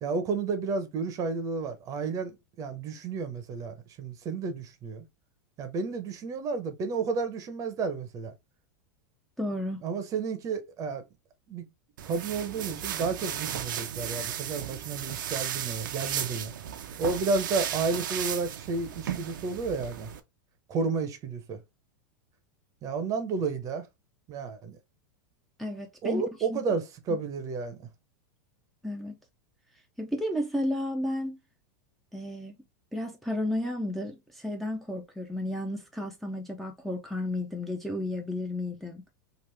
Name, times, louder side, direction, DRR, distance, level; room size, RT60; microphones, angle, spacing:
voice 1, 0.0-5.0 5.6-8.3 9.8-11.0 11.5-11.7 12.0-16.5 17.0-20.1 20.7-21.6 22.8-23.9 24.3-24.8 26.0-27.9, right 4 dB, 35° right, 0.7 m, -31 dB
voice 2, 9.4-9.8 25.6-26.2 26.5-26.6 28.8-29.1 30.0-31.4 32.1-32.5 32.9-39.0, left 1 dB, ahead, 0.5 m, -32 dB
sound 1, 12.0-20.2, right 10 dB, 85° right, 0.5 m, -35 dB
3.1 x 2.4 x 3.3 m
supercardioid pair, 130°, 10 cm